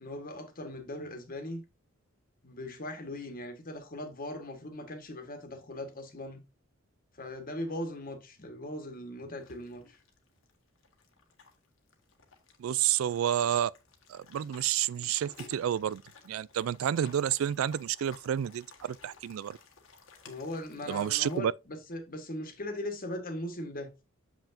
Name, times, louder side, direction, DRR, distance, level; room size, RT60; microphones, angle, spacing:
voice 1, 0.0-1.6 2.4-6.4 7.2-10.0 20.2-24.0, left 1 dB, 45° left, 1.5 m, -39 dB
sound 1, 9.4-21.4, left 5 dB, 75° left, 1.5 m, -56 dB
voice 2, 12.6-13.7 14.1-19.6 20.9-21.5, right 10 dB, 80° right, 0.3 m, -30 dB
7.1 x 5.7 x 2.6 m
head